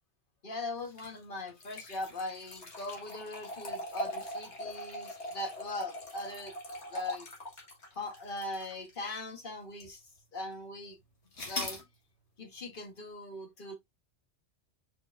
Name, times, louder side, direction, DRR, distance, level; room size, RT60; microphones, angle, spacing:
voice 1, 0.4-6.5 6.9-7.3 7.9-10.0 10.3-11.0 11.4-11.8 12.4-13.7, left 2 dB, 50° left, 1.3 m, -40 dB
sound 1, 0.8-9.3 9.8-9.9 11.3-11.8, left 1 dB, 75° left, 1.8 m, -41 dB
4.5 x 4.5 x 2.4 m
omnidirectional pair, 1.2 m